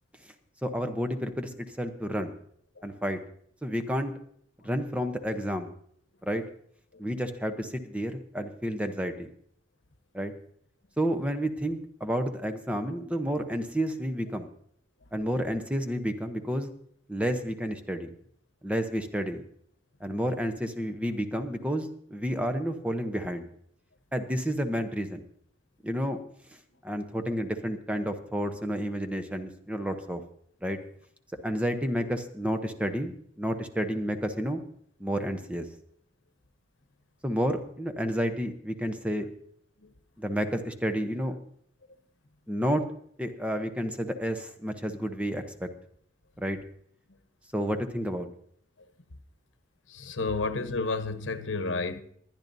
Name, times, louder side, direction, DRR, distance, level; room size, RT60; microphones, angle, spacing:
voice 1, 0.6-2.3 2.8-3.2 3.6-4.1 4.6-5.7 6.2-6.4 7.0-9.3 10.1-10.3 11.0-14.5 15.1-16.7 17.1-18.1 18.6-19.4 20.0-23.5 24.1-25.2 25.8-26.2 26.8-30.2 30.6-30.8 31.4-34.6 35.0-35.7 37.2-39.3 40.2-41.4 42.5-42.8 43.2-45.7 46.4-46.6 47.5-48.3, equal, 5° right, 0.8 m, -30 dB
voice 2, 49.9-52.0, left 3 dB, 90° left, 0.9 m, -31 dB
21.0 x 10.5 x 2.7 m
head